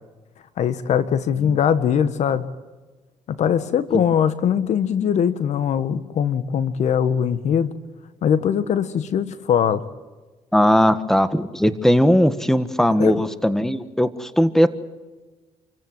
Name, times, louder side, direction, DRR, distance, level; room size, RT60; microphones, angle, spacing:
voice 1, 0.6-2.5 3.3-7.7 8.2-9.8 13.0-13.2, left 8 dB, 65° left, 13 dB, 1.5 m, -21 dB
voice 2, 10.5-14.7, equal, 5° left, 12 dB, 1.6 m, -18 dB
28.0 x 15.5 x 9.5 m, 1.2 s
cardioid pair, 80°, 13 cm